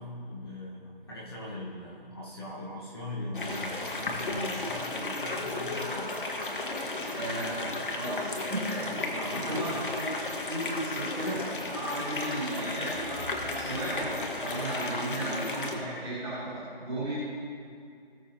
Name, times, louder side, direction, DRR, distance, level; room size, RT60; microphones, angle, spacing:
voice 1, 0.0-6.1 8.8-9.9 15.8-16.1, left 1 dB, 25° left, -7 dB, 1.5 m, -40 dB
sound 1, 3.3-15.7, left 2 dB, 60° left, 1.6 m, -34 dB
voice 2, 7.1-7.5 7.9-8.8 9.3-9.7 10.0-10.1 10.5-11.4 11.7-14.1 14.4-17.1, right 1 dB, 5° right, -12 dB, 2.6 m, -34 dB
19.0 x 7.0 x 2.9 m, 2.3 s
figure-of-eight pair, 170°, 30 cm